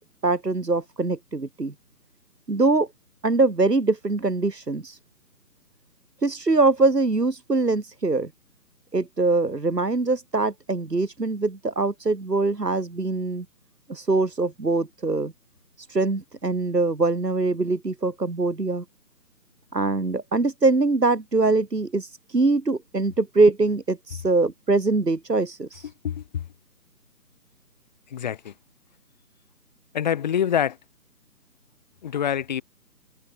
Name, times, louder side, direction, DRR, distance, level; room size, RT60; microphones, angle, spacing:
voice 1, 0.2-1.7 2.5-2.9 3.2-5.0 6.2-8.3 8.9-13.5 13.9-15.3 15.8-18.8 19.7-25.9, right 3 dB, 85° right, 1.8 m, -23 dB
voice 2, 26.0-26.4 28.1-28.5 29.9-30.8 32.0-32.6, left 9 dB, 25° left, 4.5 m, -25 dB
figure-of-eight pair, 150°, 47 cm